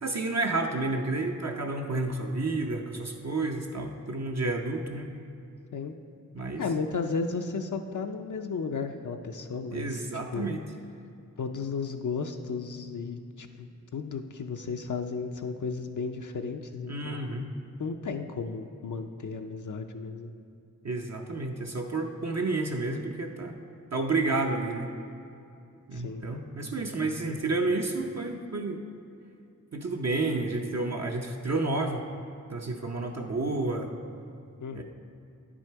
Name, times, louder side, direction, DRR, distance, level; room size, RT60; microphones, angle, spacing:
voice 1, 0.0-5.1 6.3-6.6 9.7-10.6 16.9-17.4 20.8-23.6 23.9-24.9 25.9-28.8 29.7-32.1 32.5-33.9 34.7-34.8, right 2 dB, 55° right, 1 dB, 0.7 m, -30 dB
voice 2, 6.6-10.0 10.3-10.5 11.4-17.5 17.8-20.3 25.9-26.2 34.6-34.8, left 5 dB, 70° left, 5 dB, 0.5 m, -34 dB
9.6 x 6.2 x 4.5 m, 2.6 s
wide cardioid pair, 45°, 32 cm